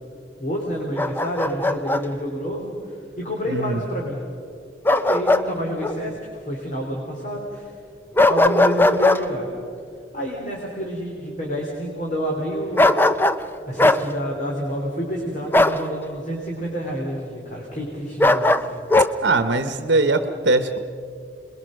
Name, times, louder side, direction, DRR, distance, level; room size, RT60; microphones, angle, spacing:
voice 1, 0.4-4.2 4.9-7.7 8.3-9.5 10.1-13.0 13.6-18.7, equal, 40° left, -2 dB, 3.3 m, -29 dB
Bark, 1.0-2.0 4.9-5.5 5.8-6.0 8.2-9.2 12.8-13.4 13.8-14.0 15.5-15.8 18.2-19.1, left 2 dB, 10° left, 0.5 m, -18 dB
voice 2, 3.4-3.8 19.2-20.8, right 2 dB, 70° right, 9 dB, 1.0 m, -21 dB
27.5 x 21.5 x 6.5 m, 2.4 s
head